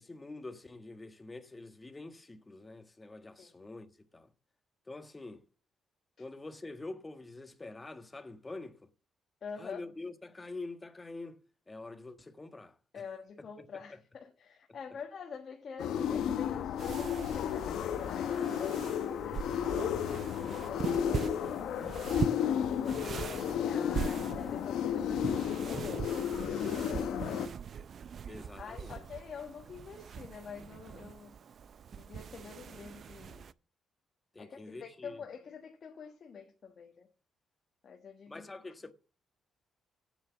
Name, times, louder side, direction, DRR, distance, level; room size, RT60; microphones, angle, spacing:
voice 1, 0.0-4.3 4.9-5.4 6.2-8.9 9.6-11.4 11.7-13.0 13.6-14.0 14.7-14.8 23.0-23.7 28.3-29.0 34.3-35.2 38.3-38.9, left 2 dB, 20° left, 1.4 m, -46 dB
voice 2, 9.4-9.8 12.9-20.1 20.4-21.8 22.4-27.5 28.6-31.3 32.0-33.5 34.4-37.1 37.8-38.7, left 6 dB, 50° left, 1.4 m, -47 dB
sound 1, 15.8-27.5, left 8 dB, 80° left, 0.9 m, -33 dB
sound 2, 16.8-33.5, right 7 dB, 55° right, 0.4 m, -42 dB
8.6 x 7.2 x 7.1 m
cardioid pair, 90°, 0 cm